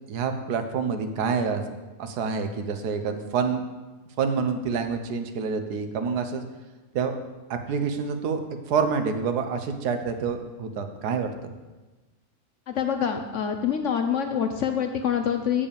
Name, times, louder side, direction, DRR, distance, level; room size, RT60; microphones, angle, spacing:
voice 1, 0.1-1.6 2.0-3.7 4.2-6.4 6.9-7.2 7.5-8.4 8.7-11.3, right 5 dB, 80° right, 7 dB, 1.4 m, -27 dB
voice 2, 12.7-15.7, left 8 dB, 65° left, 6 dB, 0.8 m, -26 dB
8.8 x 5.4 x 6.8 m, 1.2 s
omnidirectional pair, 1.7 m